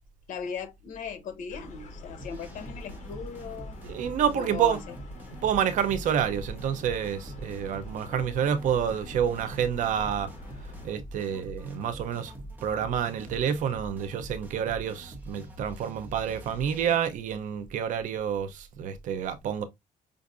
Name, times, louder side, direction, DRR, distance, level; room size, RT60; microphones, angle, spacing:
voice 1, 0.3-3.8 4.3-4.9, left 7 dB, 80° left, 0.9 m, -38 dB
sound 1, 1.5-10.9, left 1 dB, 60° left, 1.2 m, -45 dB
sound 2, 2.2-17.0, right 1 dB, 15° right, 1.1 m, -44 dB
voice 2, 3.8-4.8 5.4-10.3 10.8-12.3 12.6-19.6, right 8 dB, 70° right, 0.7 m, -28 dB
5.2 x 2.6 x 2.5 m
cardioid pair, 135°, 14 cm